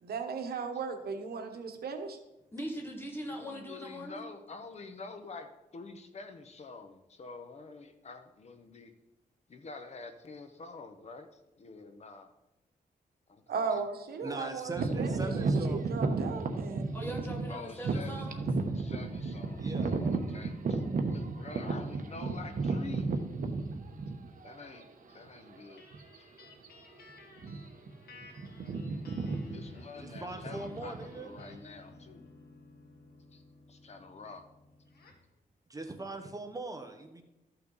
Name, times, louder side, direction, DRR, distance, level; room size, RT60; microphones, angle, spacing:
voice 1, 0.0-2.2 13.5-16.9, right 5 dB, 85° right, 5 dB, 1.2 m, -37 dB
voice 2, 2.5-4.2 16.9-18.5, equal, 15° left, 0 dB, 1.8 m, -40 dB
voice 3, 3.4-8.9 9.5-11.3 11.6-12.3 13.3-13.8 14.2-14.9 17.5-18.2 18.7-20.8 21.1-23.1 24.4-25.9 26.2-26.3 29.5-32.2 33.3-33.4 33.7-34.4, left 4 dB, 45° left, 7 dB, 0.9 m, -47 dB
voice 4, 14.2-16.2 19.6-19.9 30.0-31.3 35.7-37.2, right 2 dB, 20° right, 5 dB, 0.9 m, -41 dB
sound 1, 14.7-24.5 25.2-25.3 25.9-26.2 26.4-26.7 27.3-27.9 28.1-31.5, right 3 dB, 60° right, 1.0 m, -33 dB
sound 2, 25.8-35.3, left 2 dB, 85° left, 1.5 m, -54 dB
13.0 x 5.8 x 4.0 m, 0.94 s
wide cardioid pair, 145°, 16 cm